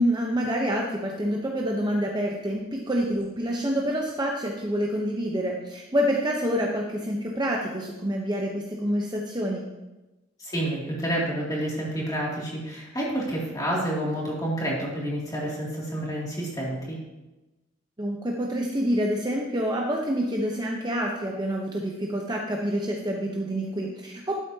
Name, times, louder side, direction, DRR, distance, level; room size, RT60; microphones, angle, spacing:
voice 1, 0.0-9.7 18.0-24.4, equal, 20° right, -1 dB, 0.8 m, -27 dB
voice 2, 10.4-17.0, right 1 dB, 20° left, -4 dB, 2.6 m, -29 dB
12.0 x 8.3 x 2.8 m, 1.0 s
head